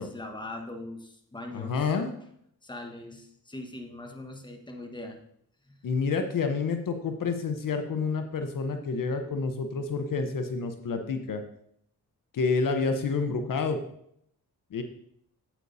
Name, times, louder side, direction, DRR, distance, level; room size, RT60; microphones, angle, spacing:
voice 1, 0.0-2.0 2.6-5.2 5.6-5.8, left 2 dB, 10° left, 4 dB, 1.3 m, -41 dB
voice 2, 1.5-2.1 5.8-11.4 12.3-13.8 14.7-14.8, left 4 dB, 65° left, 7 dB, 0.9 m, -29 dB
8.9 x 8.2 x 2.7 m, 0.70 s
cardioid pair, 70°, 36 cm